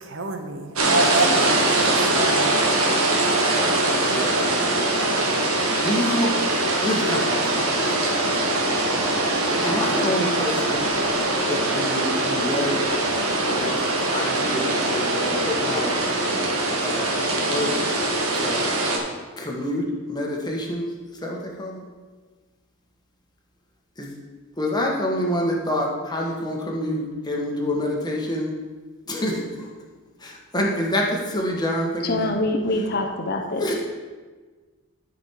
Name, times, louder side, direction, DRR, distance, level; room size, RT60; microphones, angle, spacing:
voice 1, 0.0-2.6, right 2 dB, 60° right, 5 dB, 1.0 m, -27 dB
sound 1, 0.7-19.0, right 2 dB, 90° right, 1.7 m, -22 dB
voice 2, 4.0-4.6 5.7-6.3 6.8-7.7 8.0-8.6 8.9-9.0 9.5-10.9 11.5-12.8 13.5-13.7 14.1-15.9 16.8-17.1 17.5-17.8 18.4-18.7 19.4-19.8 20.1-20.8 21.2-21.8 24.0-24.1 24.6-28.5 29.1-29.4 30.2-31.1 31.3-32.3 33.6-33.7, left 1 dB, 20° left, -1 dB, 1.4 m, -27 dB
voice 3, 32.0-33.7, left 2 dB, 50° left, 3 dB, 0.8 m, -25 dB
12.5 x 5.3 x 4.6 m, 1.4 s
head